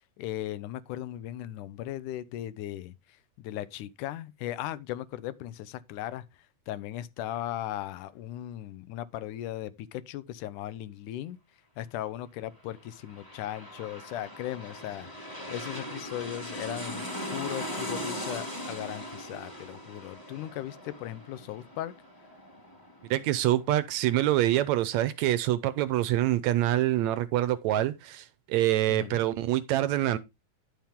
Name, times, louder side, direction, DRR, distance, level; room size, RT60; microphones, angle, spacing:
voice 1, 0.2-2.9 3.4-6.2 6.7-11.4 11.8-17.0 17.3-21.9 28.9-29.2, left 13 dB, 85° left, 2.2 m, -37 dB
sound 1, 12.8-24.1 24.5-24.6, equal, 10° left, 2.0 m, -40 dB
voice 2, 23.1-30.2, right 14 dB, 75° right, 1.8 m, -26 dB
10.5 x 7.3 x 3.6 m
omnidirectional pair, 3.5 m